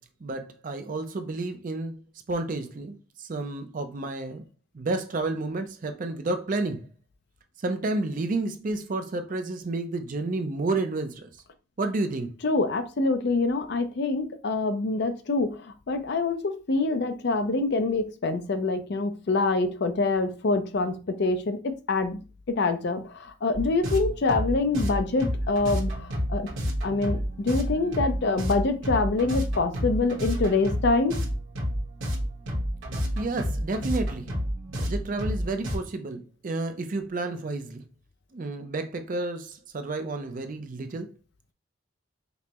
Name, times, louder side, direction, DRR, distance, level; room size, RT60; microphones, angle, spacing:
voice 1, 0.2-2.0 2.3-4.4 4.7-6.9 7.6-11.3 11.8-12.3 33.2-34.3 34.7-37.8 38.3-41.1, right 2 dB, 40° right, 0.4 m, -30 dB
voice 2, 12.4-22.2 22.5-26.5 26.8-31.2, left 3 dB, 50° left, 0.4 m, -25 dB
sound 1, 23.5-35.8, equal, 65° right, 1.2 m, -30 dB
5.2 x 2.0 x 2.9 m
head